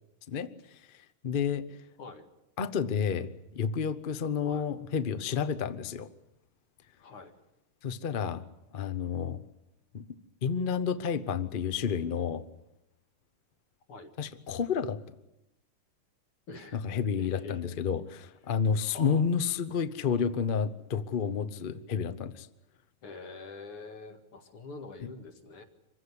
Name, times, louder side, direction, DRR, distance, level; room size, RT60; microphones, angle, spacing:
voice 1, 1.2-1.6 2.6-6.1 7.8-8.4 8.7-9.4 9.9-10.0 10.4-12.4 14.2-15.0 16.7-22.5, left 6 dB, 50° left, 12 dB, 0.6 m, -30 dB
voice 2, 7.0-7.3 13.9-14.1 16.5-16.8 17.2-17.6 18.8-19.3 23.0-25.6, left 3 dB, 90° left, 5 dB, 2.9 m, -45 dB
25.5 x 15.5 x 9.8 m, 0.90 s
omnidirectional pair, 2.3 m